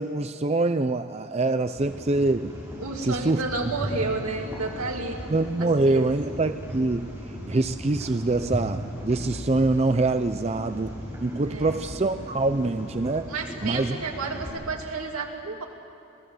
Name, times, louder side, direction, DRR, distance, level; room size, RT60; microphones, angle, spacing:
voice 1, 0.0-2.5 3.0-3.4 5.3-7.1 7.5-10.9 11.2-13.3 13.6-14.0, right 2 dB, 30° right, 9 dB, 0.5 m, -24 dB
sound 1, 1.7-14.5, equal, 15° right, 6.4 m, -37 dB
voice 2, 2.8-5.2 5.6-6.1 11.3-11.8 13.3-15.7, right 3 dB, 90° right, 1 dB, 2.7 m, -31 dB
26.0 x 18.0 x 7.9 m, 2.8 s
head